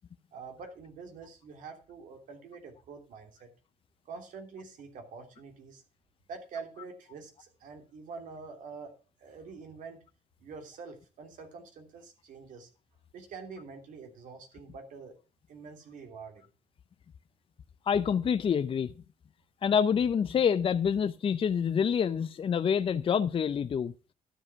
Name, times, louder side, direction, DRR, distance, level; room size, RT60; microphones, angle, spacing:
voice 1, 0.3-3.5 4.0-5.8 6.3-8.9 9.2-10.0 10.4-12.7 13.1-15.1 15.5-16.5, right 5 dB, 75° right, 3.1 m, -46 dB
voice 2, 17.9-18.9 19.6-23.9, left 7 dB, 40° left, 0.6 m, -27 dB
12.0 x 7.6 x 5.8 m
cardioid pair, 95°, 14 cm